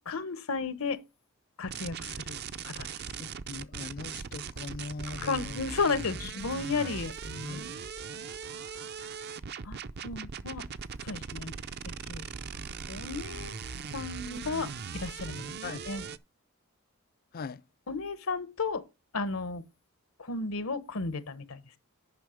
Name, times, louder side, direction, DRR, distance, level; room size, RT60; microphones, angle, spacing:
voice 1, 0.1-1.0 1.6-2.4 2.6-3.0 5.2-7.1 9.6-9.8 10.0-10.6 11.0-11.5 12.1-12.2 12.9-13.6 13.9-15.5 15.9-16.0 17.9-18.8 19.1-19.6 20.2-21.8, left 4 dB, 85° left, 1.0 m, -33 dB
sound 1, 1.7-16.2, right 6 dB, 50° right, 0.5 m, -40 dB
voice 2, 3.2-5.6 6.2-6.3 6.8-7.7 15.6-15.8 17.3-17.6, left 4 dB, 45° left, 0.4 m, -41 dB
9.4 x 5.5 x 5.0 m
head